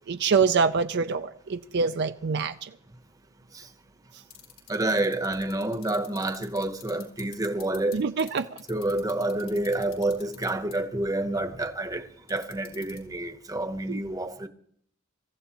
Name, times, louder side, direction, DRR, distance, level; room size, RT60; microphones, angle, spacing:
voice 1, 0.1-2.7 7.9-8.5 13.9-14.0, right 5 dB, 55° right, 0.5 m, -25 dB
sound 1, 4.3-7.9 8.2-10.7 12.3-13.0, left 11 dB, 90° left, 3.5 m, -45 dB
voice 2, 4.7-8.0 8.7-14.5, right 1 dB, 20° right, 0.9 m, -28 dB
25.0 x 14.5 x 3.0 m
head